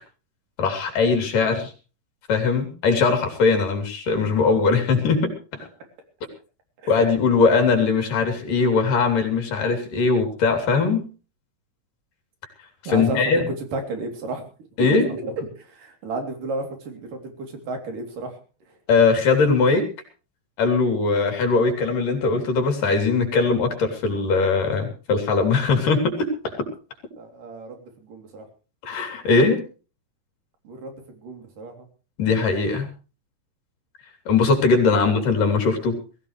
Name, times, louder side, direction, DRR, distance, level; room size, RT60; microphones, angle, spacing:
voice 1, 0.6-1.7 2.3-5.7 6.9-11.1 12.8-13.5 14.8-15.1 18.9-19.9 20.6-26.7 28.8-29.6 32.2-32.9 34.3-36.0, left 4 dB, 75° left, 5 dB, 4.9 m, -20 dB
voice 2, 12.9-13.4 13.7-14.4 14.8-18.4 27.2-28.4 30.6-31.9 34.9-35.2, right 3 dB, 70° right, 5 dB, 4.9 m, -33 dB
21.5 x 15.5 x 3.3 m, 0.36 s
omnidirectional pair, 3.9 m